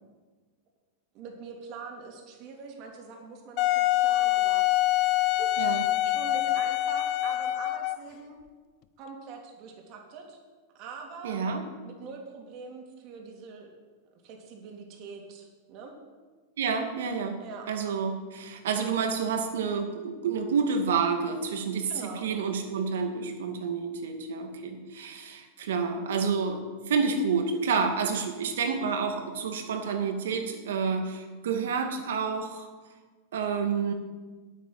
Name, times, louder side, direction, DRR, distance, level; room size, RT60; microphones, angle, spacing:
voice 1, 1.1-4.9 5.3-8.4 9.0-10.4 10.7-11.4 11.8-13.7 14.2-16.0 17.4-17.7 21.8-22.3, right 5 dB, 45° right, 1 dB, 3.2 m, -44 dB
Wind instrument woodwind instrument, 3.6-8.1, left 15 dB, 45° left, 0.6 m, -25 dB
voice 2, 11.2-11.6 16.6-17.4 17.7-21.9 22.2-32.7 33.3-33.9, right 5 dB, 85° right, 5 dB, 2.2 m, -29 dB
9.1 x 8.9 x 9.7 m, 1.4 s
supercardioid pair, 140°, 0 cm